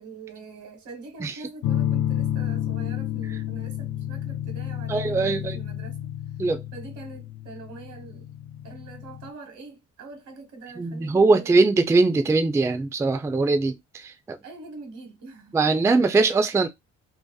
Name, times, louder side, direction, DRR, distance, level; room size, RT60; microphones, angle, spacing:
voice 1, 0.0-6.1 6.7-8.3 8.6-11.6 14.4-15.6, right 3 dB, 75° right, 1.1 m, -43 dB
sound 1, 1.6-9.3, left 11 dB, 65° left, 0.4 m, -30 dB
voice 2, 4.9-5.6 6.4-6.6 10.8-14.4 15.5-16.7, right 3 dB, 10° right, 0.3 m, -21 dB
2.7 x 2.1 x 2.3 m
cardioid pair, 90°, 30 cm